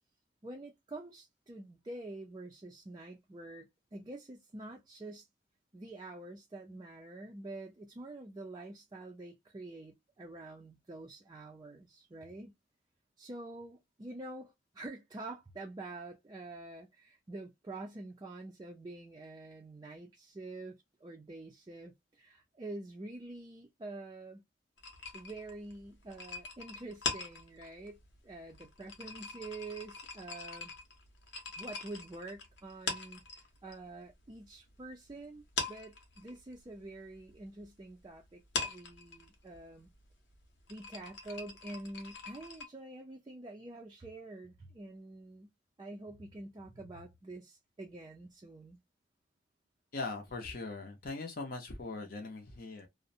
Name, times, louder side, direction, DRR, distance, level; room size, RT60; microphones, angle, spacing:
voice 1, 0.4-5.3 5.7-12.5 13.2-24.4 25.1-30.7 31.6-39.9 40.7-45.5 45.8-48.8, right 2 dB, 20° right, 0.3 m, -47 dB
sound 1, 24.8-33.8 34.1-35.1 35.4-42.7, left 4 dB, 80° left, 0.8 m, -42 dB
voice 2, 49.9-52.9, left 3 dB, 50° left, 0.6 m, -40 dB
2.5 x 2.0 x 2.5 m
head